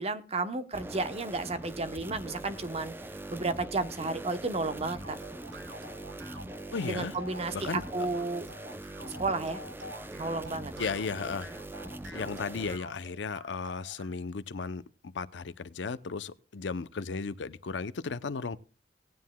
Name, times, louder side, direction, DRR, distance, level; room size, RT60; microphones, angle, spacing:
voice 1, 0.0-3.0 3.3-5.2 6.8-8.5 9.2-9.6 10.2-10.7, right 3 dB, 35° right, 0.8 m, -32 dB
sound 1, 0.7-12.8, right 1 dB, 10° right, 0.5 m, -42 dB
sound 2, 4.8-14.2, right 1 dB, 85° right, 1.6 m, -48 dB
voice 2, 6.7-7.1 7.5-7.8 10.8-11.5 12.1-18.6, left 4 dB, 85° left, 0.6 m, -35 dB
18.0 x 9.4 x 2.2 m
head